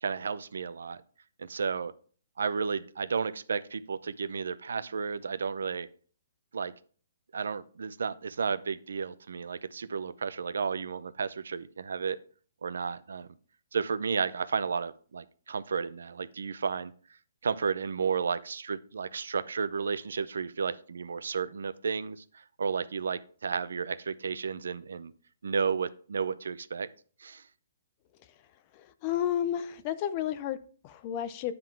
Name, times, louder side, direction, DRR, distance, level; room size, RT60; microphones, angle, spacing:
voice 1, 0.0-1.0 1.4-1.9 2.4-5.9 6.5-6.7 7.3-12.2 12.6-13.3 13.7-16.9 17.4-25.1 25.4-26.9 27.2-27.4, right 5 dB, 80° right, 15 dB, 0.5 m, -32 dB
voice 2, 28.7-31.5, left 10 dB, 20° left, 12 dB, 0.3 m, -32 dB
9.6 x 3.7 x 4.5 m, 0.43 s
hypercardioid pair, 180°, 0 cm